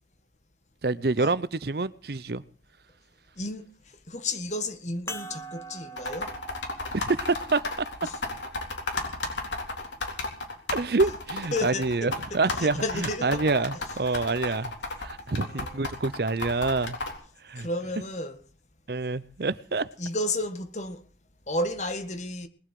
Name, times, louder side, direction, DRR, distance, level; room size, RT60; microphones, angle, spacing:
voice 1, 0.8-2.4 6.9-7.9 10.7-14.7 15.0-17.0 17.4-17.7 18.9-19.9, right 3 dB, 55° right, 0.7 m, -27 dB
voice 2, 3.4-3.7 4.1-6.3 8.0-8.2 11.5-13.4 13.7-14.2 14.5-14.6 15.4-15.9 17.6-18.4 20.0-21.0 21.5-22.5, left 2 dB, 40° left, 1.7 m, -32 dB
sound 1, 5.1-9.9 10.7-10.8 12.9-13.0, right 1 dB, 15° left, 1.7 m, -44 dB
sound 2, 6.0-17.1, left 2 dB, 85° left, 4.2 m, -33 dB
20.5 x 8.1 x 7.6 m
head